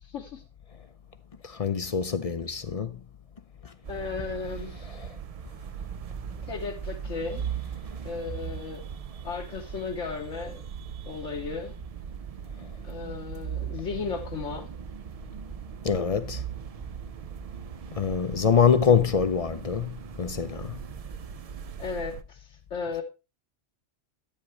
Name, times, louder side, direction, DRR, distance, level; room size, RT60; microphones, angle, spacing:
voice 1, 0.0-0.4 1.6-1.7 3.9-5.0 6.4-7.4 8.0-8.9 9.2-10.6 11.1-11.7 12.8-14.7 21.8-23.0, left 5 dB, 75° left, 1.3 m, -35 dB
voice 2, 1.4-2.9 15.8-16.4 17.9-20.8, left 6 dB, 45° left, 0.4 m, -24 dB
sound 1, 3.8-22.2, right 7 dB, 70° right, 0.3 m, -39 dB
10.0 x 8.8 x 3.2 m
omnidirectional pair, 1.3 m